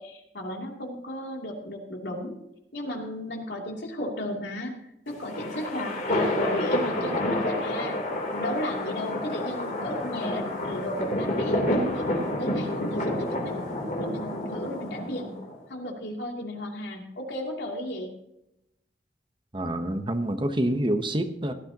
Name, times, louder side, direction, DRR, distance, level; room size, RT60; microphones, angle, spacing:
voice 1, 0.0-2.4 2.7-4.7 5.1-8.0 8.3-11.6 11.9-13.7 14.0-18.1, left 1 dB, 75° left, 0 dB, 2.8 m, -35 dB
sound 1, 5.1-15.5, left 1 dB, 50° left, 3.3 m, -29 dB
voice 2, 19.5-21.5, right 1 dB, 30° right, 8 dB, 0.9 m, -27 dB
17.5 x 13.0 x 2.9 m, 0.84 s
head